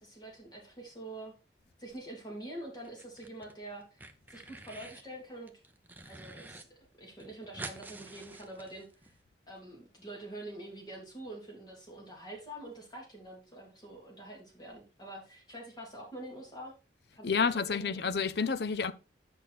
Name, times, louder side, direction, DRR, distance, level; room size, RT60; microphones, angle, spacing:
voice 1, 0.0-1.3 1.8-4.0 4.3-5.5 6.0-6.7 7.0-9.1 9.5-16.7 17.1-18.0, right 1 dB, 25° left, 2.9 m, -46 dB
sound 1, 2.8-3.5 3.8-5.1 5.5-6.6 6.9-7.0 7.2-9.1, right 2 dB, 10° right, 0.7 m, -47 dB
voice 2, 17.2-18.9, left 5 dB, 60° left, 0.6 m, -29 dB
8.3 x 6.0 x 4.1 m
head